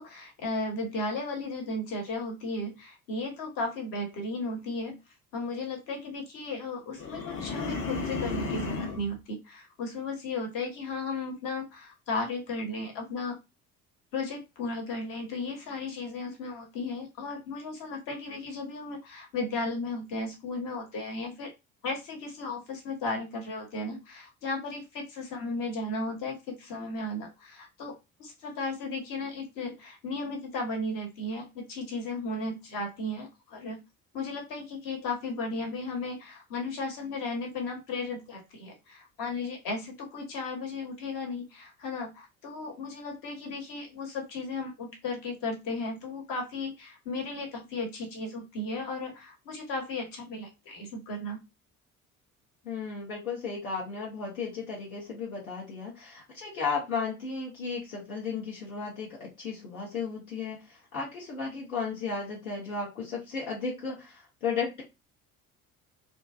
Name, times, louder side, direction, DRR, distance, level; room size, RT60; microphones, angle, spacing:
voice 1, 0.0-5.0 5.3-13.4 14.1-21.5 21.8-33.8 34.1-51.4, left 2 dB, 50° left, 2 dB, 1.1 m, -35 dB
sound 1, 7.0-9.1, left 4 dB, 30° left, 0.6 m, -33 dB
voice 2, 52.6-64.8, left 5 dB, 75° left, -4 dB, 0.8 m, -34 dB
2.6 x 2.2 x 2.3 m, 0.24 s
figure-of-eight pair, 55°, 43 cm